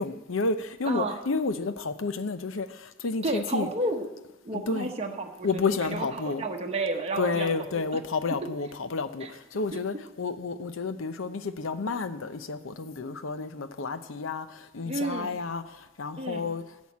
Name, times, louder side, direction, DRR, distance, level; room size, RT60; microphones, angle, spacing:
voice 1, 0.0-3.7 4.7-4.9 5.4-6.4 7.2-16.6, left 4 dB, 80° left, 11 dB, 0.7 m, -31 dB
voice 2, 0.8-1.2 3.2-4.1 4.4-7.8 9.2-9.3 9.7-9.8 14.9-15.4 16.2-16.5, right 2 dB, 30° right, 2 dB, 0.9 m, -31 dB
11.5 x 6.3 x 8.4 m, 1.0 s
head